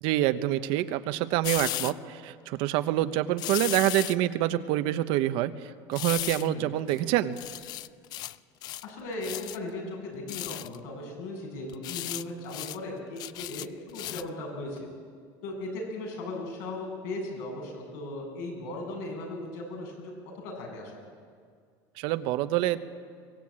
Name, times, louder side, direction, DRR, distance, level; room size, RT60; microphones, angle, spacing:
voice 1, 0.0-7.4 22.0-22.8, right 14 dB, 60° right, 11 dB, 1.0 m, -27 dB
sound 1, 1.4-1.9 3.4-4.2 5.9-6.5 6.9-7.0 7.4-8.4 8.6-8.9 9.2-9.6 10.3-10.8 11.7-12.2 12.5-12.8 13.2-14.3 14.8-14.9, left 15 dB, 45° left, 0.5 m, -35 dB
voice 2, 8.8-14.9 15.4-20.9, left 2 dB, 75° left, 1 dB, 8.0 m, -37 dB
23.0 x 19.5 x 8.8 m, 2.1 s
cardioid pair, 160°, 10 cm